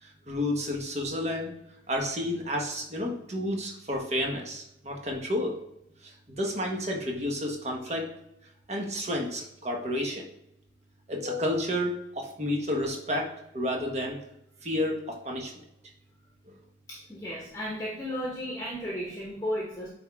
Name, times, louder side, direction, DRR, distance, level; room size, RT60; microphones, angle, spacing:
voice 1, 0.0-1.5 1.9-5.6 6.0-8.1 8.7-10.2 11.1-13.3 13.5-14.2 14.6-15.5, left 1 dB, 35° right, 0 dB, 1.3 m, -31 dB
voice 2, 16.9-19.9, equal, 15° left, -4 dB, 1.1 m, -34 dB
8.9 x 3.6 x 3.6 m, 0.82 s
head